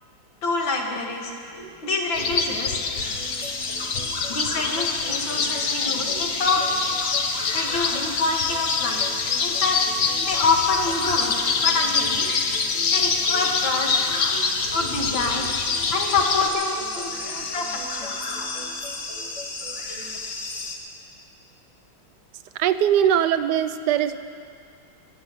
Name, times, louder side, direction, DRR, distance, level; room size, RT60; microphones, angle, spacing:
voice 1, 0.4-1.3 1.8-2.8 4.3-6.6 7.5-9.2 9.4-9.8 10.2-12.3 12.9-14.0 14.7-15.5 15.9-18.1, left 3 dB, 75° left, 1 dB, 2.4 m, -26 dB
sound 1, 1.5-20.2, left 1 dB, 15° left, 1.5 m, -43 dB
sound 2, 2.1-16.5, left 5 dB, 50° left, 1.1 m, -26 dB
sound 3, 3.0-20.8, left 3 dB, 35° left, 1.3 m, -33 dB
voice 2, 22.6-24.2, right 10 dB, 70° right, 12 dB, 1.1 m, -21 dB
17.5 x 9.6 x 7.4 m, 2.5 s
omnidirectional pair, 2.1 m